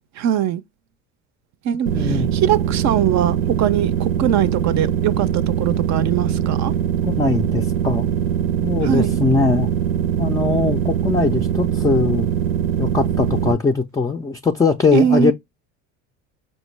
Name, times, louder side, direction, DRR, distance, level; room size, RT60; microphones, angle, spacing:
voice 1, 0.2-0.6 1.6-6.7 8.8-9.2 14.9-15.3, right 9 dB, 50° right, 0.5 m, -21 dB
voice 2, 1.9-2.3 7.0-8.1 8.6-9.7 10.2-12.3 12.8-15.3, left 4 dB, 10° left, 0.3 m, -20 dB
sound 1, 1.9-13.5, right 8 dB, 90° right, 0.7 m, -22 dB
5.2 x 2.2 x 3.1 m
supercardioid pair, 90°, 36 cm